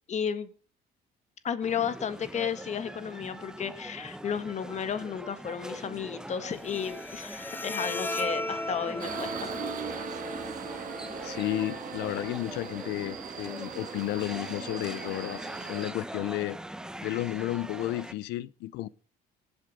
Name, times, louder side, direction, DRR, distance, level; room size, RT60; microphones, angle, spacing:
voice 1, 0.1-0.5 1.4-9.5 10.0-10.1, left 7 dB, 45° left, 1.7 m, -33 dB
sound 1, 1.6-18.1, right 1 dB, 5° right, 1.0 m, -43 dB
Bowed string instrument, 6.5-13.5, left 1 dB, 10° left, 0.7 m, -38 dB
Subway metro underground, 9.0-15.9, right 8 dB, 55° right, 1.6 m, -40 dB
voice 2, 11.2-15.4 15.7-16.6 17.0-18.9, left 16 dB, 85° left, 0.7 m, -32 dB
19.5 x 8.0 x 5.2 m
cardioid pair, 110°, 17 cm